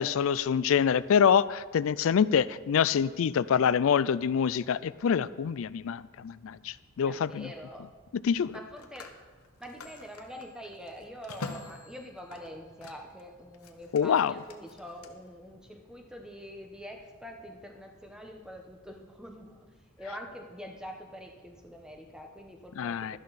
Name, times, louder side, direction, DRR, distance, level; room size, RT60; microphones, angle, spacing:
voice 1, 0.0-7.5 8.2-8.6 13.9-14.3 22.8-23.2, left 7 dB, 65° left, 18 dB, 0.3 m, -26 dB
Telephone, 6.2-6.4 8.4-13.2 13.5-15.1, left 3 dB, 85° left, 1.0 m, -46 dB
voice 2, 7.0-7.9 8.5-9.2 9.6-19.7 20.0-23.2, equal, 5° right, 2 dB, 1.0 m, -45 dB
12.5 x 11.0 x 4.1 m, 1.4 s
head